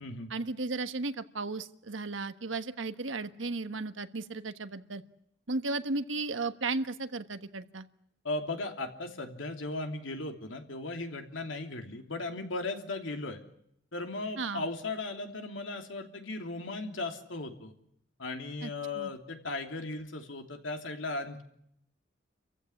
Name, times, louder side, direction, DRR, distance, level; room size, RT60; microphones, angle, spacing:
voice 1, 0.3-5.0 5.5-7.9 14.4-14.6 18.6-19.1, right 3 dB, 85° right, 10 dB, 1.3 m, -35 dB
voice 2, 8.2-13.4 13.9-17.7 18.2-21.4, left 2 dB, 90° left, 4 dB, 3.0 m, -37 dB
28.5 x 15.5 x 9.9 m, 0.74 s
head